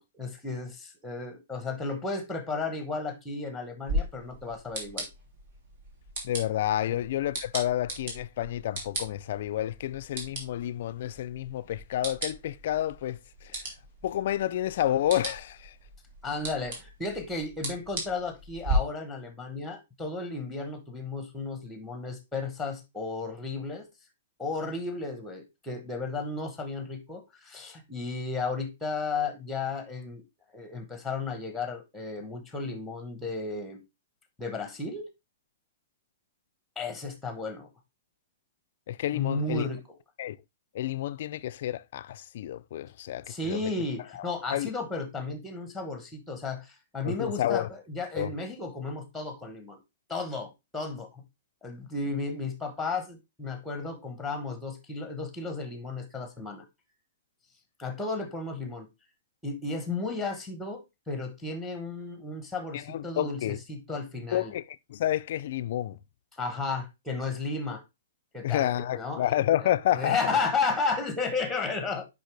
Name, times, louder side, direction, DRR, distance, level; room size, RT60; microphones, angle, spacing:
voice 1, 0.0-5.1 16.2-23.9 24.4-30.2 30.5-33.8 34.4-35.1 36.8-37.7 39.1-39.8 43.3-49.8 50.1-51.2 51.6-56.6 57.8-58.9 59.4-64.5 66.4-67.8 68.3-69.3 69.6-72.1, left 3 dB, 5° left, 0.9 m, -34 dB
sound 1, 3.9-18.7, right 2 dB, 45° right, 3.0 m, -38 dB
voice 2, 6.2-13.2 13.4-13.6 14.0-15.7 38.9-39.6 40.2-40.4 40.7-43.7 44.5-44.7 47.0-47.7 48.2-48.3 62.7-63.6 63.9-64.0 64.3-64.6 64.9-66.0 68.4-70.4, left 12 dB, 40° left, 0.4 m, -29 dB
6.6 x 5.2 x 3.2 m
hypercardioid pair, 180°, 0 cm